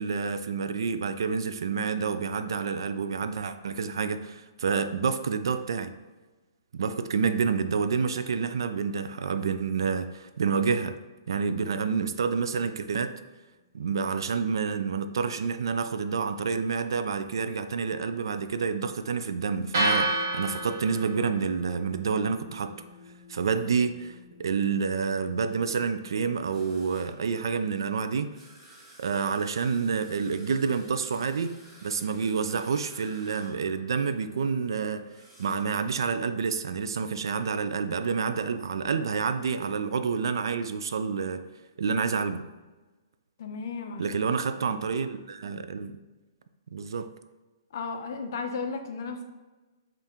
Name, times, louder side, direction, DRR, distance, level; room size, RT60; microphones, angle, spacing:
voice 1, 0.0-5.9 6.7-10.9 11.3-13.1 13.7-22.7 23.3-24.1 24.4-28.3 29.0-35.1 35.4-41.4 41.8-42.4 44.0-46.0 46.7-47.1, right 5 dB, 75° right, 10 dB, 0.3 m, -28 dB
sound 1, 19.7-27.9, right 1 dB, 45° right, 1.0 m, -34 dB
sound 2, 26.5-36.2, right 1 dB, 5° right, 0.9 m, -55 dB
voice 2, 43.4-44.1 44.6-44.7 47.7-49.2, left 4 dB, 45° left, 5 dB, 0.4 m, -34 dB
3.5 x 2.5 x 4.2 m, 1.2 s
hypercardioid pair, 170°, 2 cm